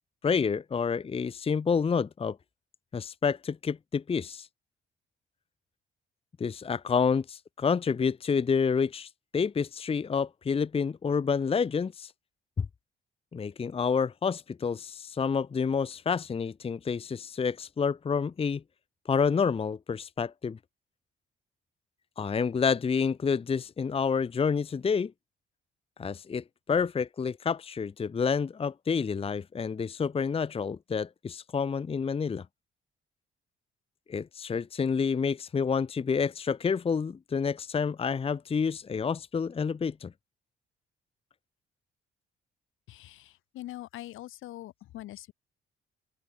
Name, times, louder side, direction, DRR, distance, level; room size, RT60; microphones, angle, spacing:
voice 1, 0.2-2.4 2.9-4.5 6.4-12.1 12.6-12.7 13.3-18.6 19.1-20.6 22.2-25.1 26.0-32.4 34.1-40.1, left 6 dB, 30° left, 0.7 m, -29 dB
voice 2, 42.9-45.3, left 15 dB, 90° left, 4.2 m, -43 dB
open air
cardioid pair, 90°, 20 cm